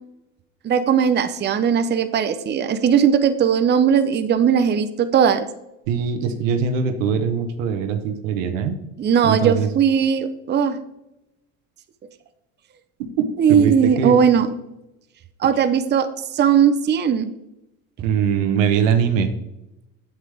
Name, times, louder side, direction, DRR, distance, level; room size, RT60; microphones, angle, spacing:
voice 1, 0.6-5.4 9.0-10.8 13.4-14.5 15.4-16.1 16.3-17.3, right 7 dB, 25° right, 9 dB, 0.7 m, -18 dB
voice 2, 5.9-8.8 9.2-9.7 13.0-14.2 18.0-19.3, right 7 dB, 85° right, 8 dB, 1.1 m, -22 dB
8.1 x 7.4 x 3.4 m, 0.91 s
supercardioid pair, 95°, 38 cm